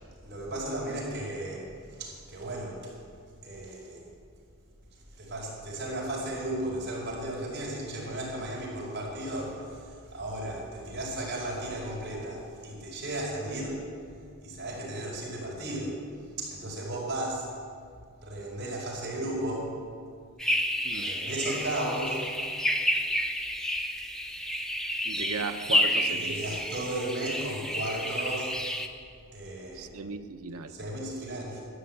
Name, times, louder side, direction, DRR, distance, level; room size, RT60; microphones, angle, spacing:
voice 1, 0.2-2.9 3.4-4.0 4.9-13.8 14.4-16.0 16.4-17.5 18.2-19.7 20.9-22.2 25.2-25.3 26.1-28.5 29.3-30.0 30.7-31.6, right 1 dB, 50° right, -4 dB, 4.9 m, -35 dB
sound 1, 20.4-28.9, equal, ahead, 0.6 m, -30 dB
voice 2, 25.0-26.6 29.7-30.7, right 4 dB, 75° right, 7 dB, 0.9 m, -36 dB
13.5 x 9.7 x 8.6 m, 2.2 s
head